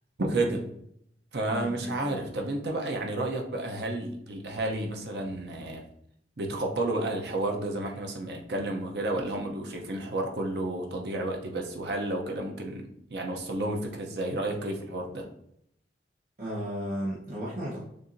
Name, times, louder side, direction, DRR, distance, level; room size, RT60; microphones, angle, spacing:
voice 1, 0.2-0.6 1.3-5.9 6.4-15.3, right 2 dB, 65° right, 2 dB, 0.8 m, -31 dB
voice 2, 1.5-2.2 16.4-17.8, equal, 50° right, -7 dB, 1.1 m, -35 dB
6.7 x 2.7 x 2.6 m, 0.72 s
head